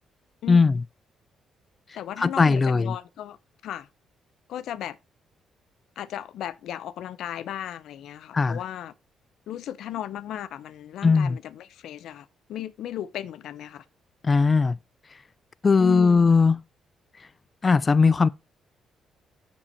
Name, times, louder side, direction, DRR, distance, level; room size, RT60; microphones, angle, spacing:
voice 1, 0.5-0.8 2.2-3.0 8.3-8.6 11.0-11.4 14.2-14.8 15.6-16.6 17.6-18.3, left 4 dB, 30° left, 0.3 m, -19 dB
voice 2, 1.9-3.4 3.6-3.9 4.5-5.0 6.0-8.9 9.5-13.8 15.8-16.3, left 11 dB, 80° left, 0.6 m, -35 dB
7.3 x 6.1 x 4.3 m
cardioid pair, 90°, 0 cm